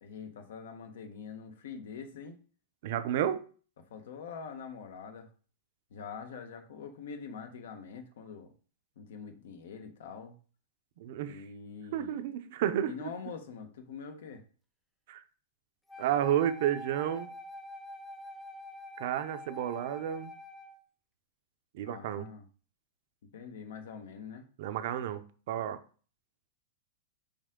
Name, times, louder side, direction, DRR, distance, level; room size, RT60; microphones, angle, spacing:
voice 1, 0.0-2.4 3.9-5.3 5.9-8.5 9.0-10.4 11.2-12.2 12.8-14.4 21.8-22.5 23.3-24.5, left 6 dB, 75° left, 1.2 m, -44 dB
voice 2, 2.8-3.5 11.0-11.4 11.9-13.1 15.1-15.2 16.0-17.3 19.0-20.3 21.7-22.3 24.6-25.8, right 10 dB, 55° right, 0.6 m, -31 dB
Wind instrument woodwind instrument, 15.9-20.8, left 1 dB, 5° left, 0.7 m, -46 dB
5.3 x 5.0 x 3.7 m
supercardioid pair, 160°, 0 cm